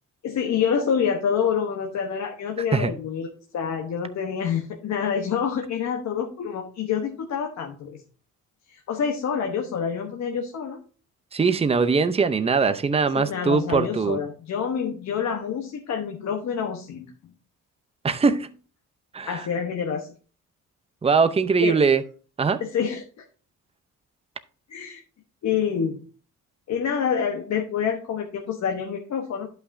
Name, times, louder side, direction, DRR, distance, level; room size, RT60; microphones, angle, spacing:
voice 1, 0.2-8.0 8.7-10.8 13.1-17.1 19.3-20.1 21.6-21.8 22.6-23.2 24.7-25.0 25.4-26.0 26.7-29.5, left 7 dB, 65° left, 1.1 m, -27 dB
voice 2, 11.3-14.2 18.0-18.5 19.1-19.5 21.0-22.0 22.4-22.6, right 5 dB, 20° right, 0.7 m, -21 dB
11.0 x 5.8 x 2.7 m
cardioid pair, 90°, 30 cm